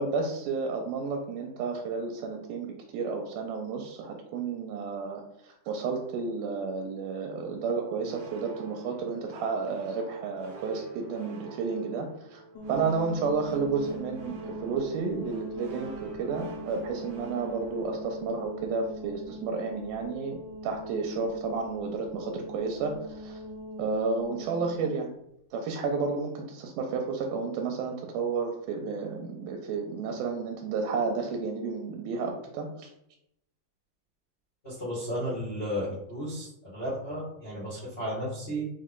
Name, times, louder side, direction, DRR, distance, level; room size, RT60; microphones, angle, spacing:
voice 1, 0.0-12.4 12.7-20.4 20.6-23.4 23.8-25.1 25.5-32.9, right 4 dB, 85° right, 2 dB, 2.0 m, -31 dB
sound 1, 8.0-18.9, right 5 dB, 65° right, 1.5 m, -48 dB
sound 2, 12.6-24.9, equal, 90° left, 2.3 m, -41 dB
voice 2, 34.6-36.5 36.7-38.6, equal, 70° left, -8 dB, 0.5 m, -33 dB
5.1 x 2.2 x 3.7 m, 0.80 s
omnidirectional pair, 3.6 m